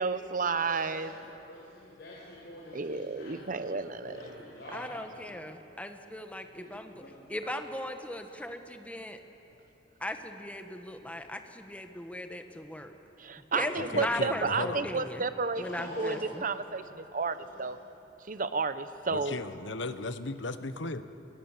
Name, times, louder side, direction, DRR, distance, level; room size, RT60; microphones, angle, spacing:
voice 1, 0.0-1.1 2.7-4.1 13.2-17.8 18.3-19.4, right 4 dB, 45° right, 12 dB, 1.0 m, -32 dB
voice 2, 0.7-1.1 1.5-5.3 6.5-7.1 9.4-9.6 13.6-14.2 15.5-16.4 17.1-17.7, left 1 dB, 65° left, -5 dB, 5.4 m, -45 dB
voice 3, 4.7-6.9 7.3-9.2 10.0-12.9 13.5-15.2 15.6-16.4, left 1 dB, 10° left, 6 dB, 1.4 m, -38 dB
voice 4, 13.9-14.9 19.1-21.0, left 3 dB, 85° left, 11 dB, 1.2 m, -36 dB
28.0 x 22.5 x 7.5 m, 2.9 s
head